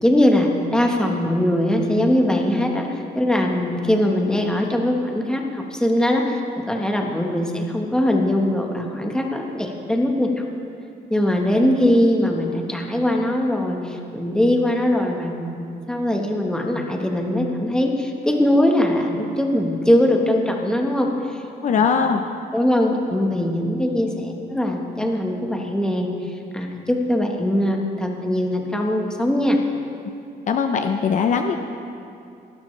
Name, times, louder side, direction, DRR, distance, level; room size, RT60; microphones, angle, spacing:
voice 1, 0.0-10.4 11.1-21.1 21.8-21.9 22.5-26.1 26.5-29.6, left 1 dB, 5° left, 1 dB, 1.3 m, -21 dB
voice 2, 21.6-22.2 30.4-31.6, left 6 dB, 45° left, 6 dB, 0.6 m, -20 dB
19.0 x 11.5 x 3.3 m, 2.5 s
cardioid pair, 140°, 17 cm